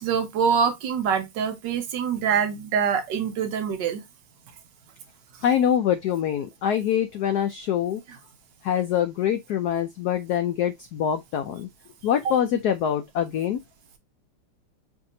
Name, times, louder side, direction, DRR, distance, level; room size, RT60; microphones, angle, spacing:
voice 1, 0.0-4.0 12.2-12.3, right 7 dB, 70° right, 1.3 m, -25 dB
voice 2, 5.4-8.0 8.6-11.7 12.0-13.6, left 9 dB, 85° left, 0.8 m, -24 dB
5.8 x 2.8 x 2.5 m
omnidirectional pair, 2.3 m